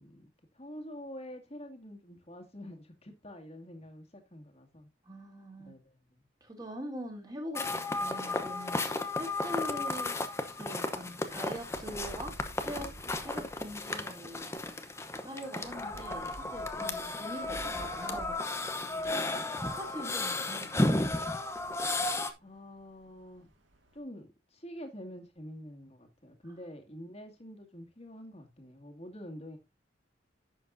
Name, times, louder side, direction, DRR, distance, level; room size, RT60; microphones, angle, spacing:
voice 1, 0.0-4.9 5.6-6.3 16.8-17.2 18.8-19.5 20.4-21.0 22.4-23.5 23.9-29.6, equal, 35° left, 2.1 m, -47 dB
voice 2, 5.0-5.7 6.4-10.2 10.6-12.3 12.6-12.9 13.2-14.5 15.2-18.3 19.0-19.2 19.7-20.9 26.5-26.6, equal, 20° right, 2.9 m, -43 dB
sound 1, 7.6-22.3, left 2 dB, 15° left, 0.8 m, -34 dB
sound 2, 10.0-24.0, right 1 dB, 85° right, 1.9 m, -53 dB
11.0 x 7.7 x 2.6 m
head